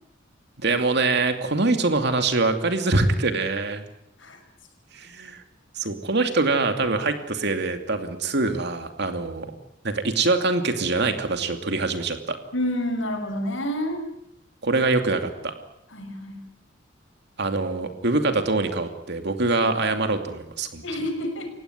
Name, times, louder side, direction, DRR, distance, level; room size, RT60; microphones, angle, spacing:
voice 1, 0.6-3.8 4.9-5.4 5.8-9.5 9.8-12.4 14.6-15.5 17.4-20.8, right 3 dB, 60° right, 7 dB, 2.7 m, -24 dB
voice 2, 12.5-14.1 15.9-16.4 20.8-21.5, equal, 80° left, 5 dB, 5.8 m, -28 dB
29.0 x 16.5 x 9.3 m, 0.79 s
head